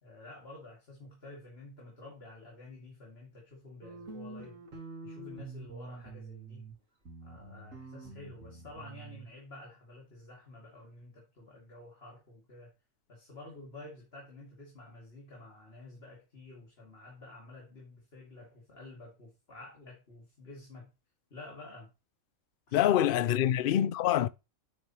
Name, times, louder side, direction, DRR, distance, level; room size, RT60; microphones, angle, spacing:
voice 1, 0.0-4.6 5.0-6.6 7.2-12.7 13.1-20.9 21.3-21.9 22.7-22.9, left 2 dB, 45° left, 2.7 m, -50 dB
sound 1, 3.8-6.7 7.1-9.3, right 3 dB, 65° right, 2.9 m, -46 dB
voice 2, 22.7-24.3, left 11 dB, 65° left, 0.5 m, -25 dB
9.1 x 7.2 x 3.0 m
omnidirectional pair, 1.4 m